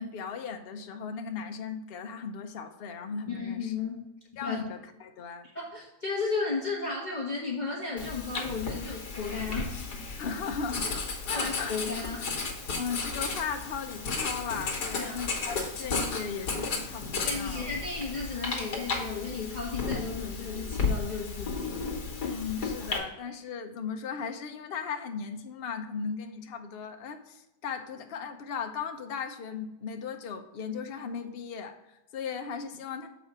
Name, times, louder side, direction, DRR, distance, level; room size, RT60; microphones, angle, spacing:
voice 1, 0.0-3.7 4.4-5.5 10.2-10.9 11.2-11.8 12.8-17.7 22.2-33.1, left 6 dB, 60° left, 6 dB, 0.6 m, -37 dB
voice 2, 3.3-4.0 4.4-4.6 5.5-9.8 11.3-12.3 14.9-15.1 17.2-21.8, left 4 dB, 30° left, -4 dB, 1.4 m, -34 dB
Writing, 8.0-23.0, left 4 dB, 75° left, 1.9 m, -34 dB
7.3 x 4.1 x 4.8 m, 0.93 s
omnidirectional pair, 1.8 m